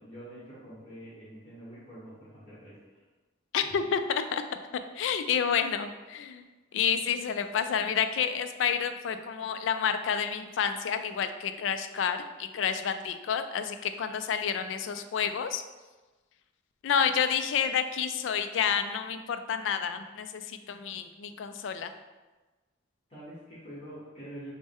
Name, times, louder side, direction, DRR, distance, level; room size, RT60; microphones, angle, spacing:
voice 1, 0.0-3.0 3.6-3.9 23.1-24.5, right 1 dB, 30° left, -10 dB, 1.2 m, -46 dB
voice 2, 3.5-4.4 5.0-6.4 6.7-15.6 16.8-21.9, left 7 dB, 80° left, 9 dB, 0.3 m, -29 dB
6.2 x 2.1 x 3.6 m, 1.2 s
head